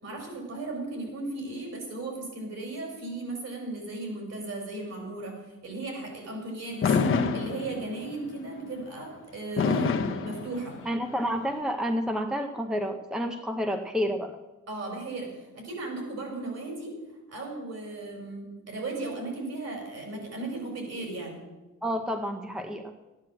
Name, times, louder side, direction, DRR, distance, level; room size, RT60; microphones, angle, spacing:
voice 1, 0.0-7.0 7.3-10.8 14.7-16.9 17.3-21.4, right 2 dB, 55° right, 0 dB, 5.7 m, -36 dB
Fireworks, 6.8-8.1 9.6-11.1, left 5 dB, 40° left, 1.1 m, -26 dB
voice 2, 10.9-14.4 21.8-22.9, equal, ahead, 6 dB, 0.7 m, -30 dB
13.5 x 9.8 x 7.6 m, 1.1 s
wide cardioid pair, 160°, 31 cm